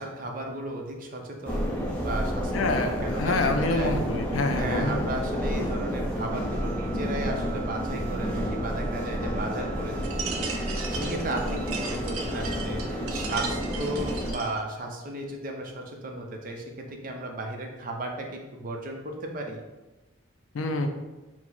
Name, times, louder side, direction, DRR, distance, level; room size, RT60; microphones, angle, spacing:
voice 1, 0.0-3.9 4.6-18.3 18.5-19.6, right 1 dB, 40° right, 1 dB, 0.5 m, -35 dB
sound 1, 1.4-14.3, equal, 5° left, 0.6 m, -30 dB
voice 2, 2.5-5.0 20.5-20.9, left 3 dB, 75° left, 5 dB, 0.4 m, -27 dB
Wind instrument woodwind instrument, 6.5-13.4, right 9 dB, 25° left, 1.4 m, -46 dB
sound 2, 10.0-14.6, right 5 dB, 90° right, 0.5 m, -37 dB
4.5 x 2.0 x 4.2 m, 1.1 s
head